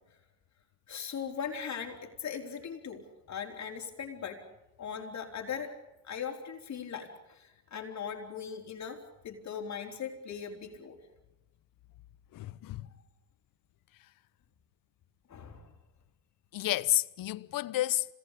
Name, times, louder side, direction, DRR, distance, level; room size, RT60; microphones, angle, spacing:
voice 1, 0.9-4.4 4.8-5.7 6.0-11.0 15.3-15.7, left 7 dB, 50° left, 4.2 m, -39 dB
voice 2, 12.3-12.9 16.5-18.1, left 15 dB, 65° left, 0.9 m, -30 dB
26.0 x 19.5 x 8.4 m
cardioid pair, 85°, 36 cm